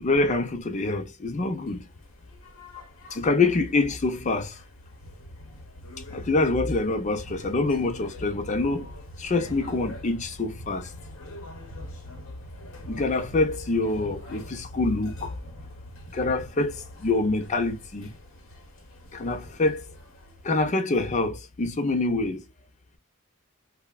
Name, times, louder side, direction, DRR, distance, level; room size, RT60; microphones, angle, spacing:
voice 1, 0.0-1.9 3.1-4.6 6.1-8.9 9.2-10.9 12.9-15.3 16.1-18.1 19.1-19.8 20.4-22.4, left 3 dB, 35° left, 0.5 m, -25 dB
sound 1, 1.6-20.8, left 1 dB, 65° left, 0.9 m, -44 dB
3.3 x 2.2 x 2.2 m
head